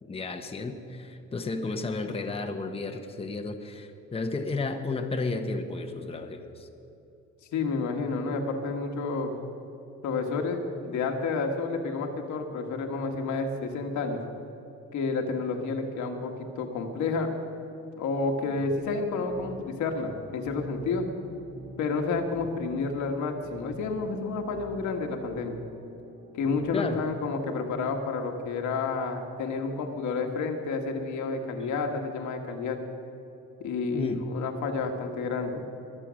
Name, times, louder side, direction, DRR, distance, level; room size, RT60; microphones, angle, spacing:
voice 1, 0.0-6.7 26.7-27.0 31.6-31.7 33.9-34.2, left 3 dB, 20° left, 5 dB, 0.9 m, -33 dB
voice 2, 7.5-9.3 10.0-14.2 14.9-17.3 18.0-21.0 21.8-25.6 26.3-32.8 33.6-35.6, left 4 dB, 80° left, 3 dB, 1.6 m, -30 dB
sound 1, 18.4-26.9, equal, 45° right, 3.0 m, -47 dB
22.0 x 7.7 x 6.3 m, 3.0 s
cardioid pair, 110°, 29 cm